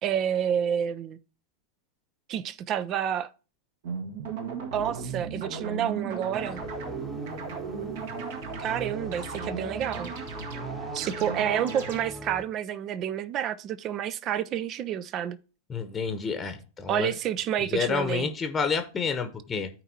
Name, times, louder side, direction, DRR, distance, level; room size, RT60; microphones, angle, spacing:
voice 1, 0.0-1.2 2.3-3.3 4.7-6.6 8.6-10.1 10.9-15.4 16.9-18.3, right 9 dB, 35° right, 0.5 m, -29 dB
sound 1, 3.8-12.0, right 5 dB, 55° right, 1.3 m, -36 dB
sound 2, 6.3-12.4, equal, 5° right, 1.0 m, -42 dB
voice 2, 15.7-17.1 17.7-19.7, left 5 dB, 20° left, 1.0 m, -29 dB
13.5 x 4.6 x 2.7 m
figure-of-eight pair, 90°, 0 cm